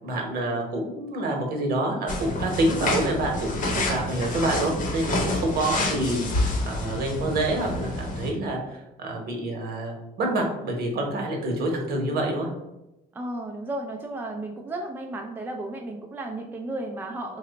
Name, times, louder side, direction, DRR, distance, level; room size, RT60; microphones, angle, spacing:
voice 1, 0.0-12.5, right 1 dB, 65° right, 1 dB, 0.9 m, -27 dB
sound 1, 2.1-8.3, left 2 dB, 50° left, 0.8 m, -28 dB
voice 2, 5.9-6.3 13.1-17.4, right 1 dB, 10° right, 2 dB, 0.3 m, -34 dB
3.0 x 2.1 x 3.9 m, 0.93 s
cardioid pair, 110°, 17 cm